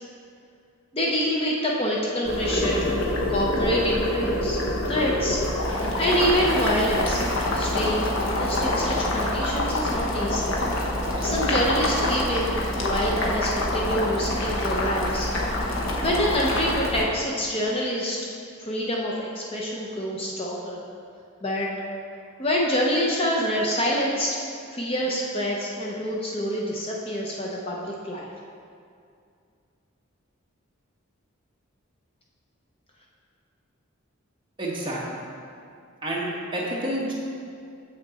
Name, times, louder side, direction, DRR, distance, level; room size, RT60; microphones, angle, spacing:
voice 1, 0.9-2.9 3.3-4.6 4.9-5.4 6.0-7.2 7.5-10.5 11.2-15.3 16.0-18.2 18.6-20.8 21.4-21.7 22.4-24.4 24.7-28.3, equal, 25° left, -3 dB, 0.6 m, -26 dB
Boiling, 2.2-17.0, left 1 dB, 70° left, 1.0 m, -26 dB
voice 2, 34.6-35.2 36.0-37.1, right 1 dB, 20° right, -5 dB, 1.1 m, -29 dB
7.3 x 6.2 x 4.1 m, 2.4 s
head